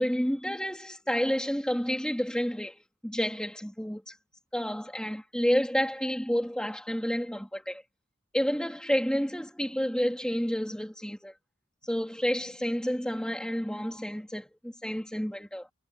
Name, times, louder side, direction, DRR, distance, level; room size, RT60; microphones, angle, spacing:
voice 1, 0.0-4.1 4.5-7.8 8.3-11.3 11.8-15.7, equal, 5° left, 2.4 m, -30 dB
head